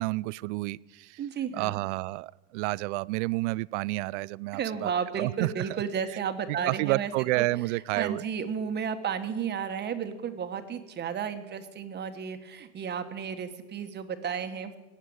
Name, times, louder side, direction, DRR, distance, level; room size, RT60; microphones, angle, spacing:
voice 1, 0.0-1.2 1.5-4.9 5.2-5.8 6.5-8.2, right 21 dB, 70° right, 23 dB, 0.5 m, -30 dB
voice 2, 1.2-1.8 4.5-7.4 7.9-14.8, right 7 dB, 25° right, 8 dB, 1.4 m, -33 dB
18.0 x 7.5 x 8.8 m, 1.2 s
supercardioid pair, 125°, 37 cm